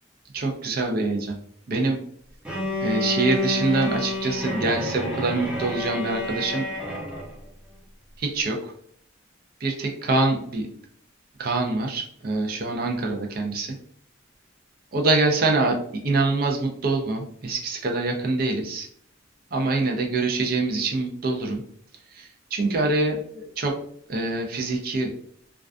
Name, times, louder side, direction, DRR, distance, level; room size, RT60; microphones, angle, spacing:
voice 1, 0.3-1.4 1.7-2.0 2.8-6.7 8.2-8.7 9.6-10.7 11.4-13.8 14.9-15.8 16.0-18.9 19.5-21.6 22.1-23.8 24.1-25.1, right 3 dB, 50° right, 3 dB, 0.4 m, -25 dB
Bowed string instrument, 2.5-7.3, left 1 dB, 10° right, 0.6 m, -29 dB
2.3 x 2.3 x 2.4 m, 0.63 s
head